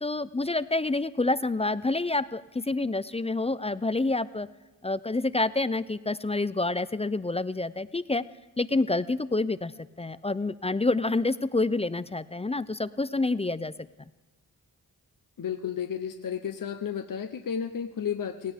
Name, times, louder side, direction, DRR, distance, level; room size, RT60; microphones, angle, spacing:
voice 1, 0.0-4.5 4.8-8.2 8.6-9.7 10.0-13.7, left 2 dB, 15° left, 15 dB, 0.4 m, -28 dB
voice 2, 15.4-18.5, left 8 dB, 60° left, 7 dB, 0.8 m, -32 dB
17.0 x 17.0 x 3.6 m, 1.2 s
cardioid pair, 55°, 38 cm